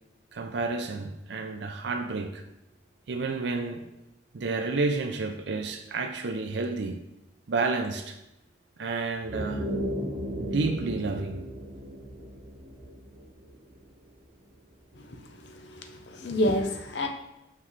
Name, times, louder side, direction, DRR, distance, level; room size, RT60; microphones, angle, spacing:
voice 1, 0.3-2.4 3.1-3.8 4.3-7.0 7.5-8.2 8.8-9.6 10.4-11.4, right 3 dB, 75° right, 0.5 m, -30 dB
sound 1, 9.1-14.0, equal, 35° right, 0.9 m, -35 dB
voice 2, 15.7-17.1, left 1 dB, 75° left, 0.7 m, -28 dB
5.8 x 5.5 x 3.2 m
head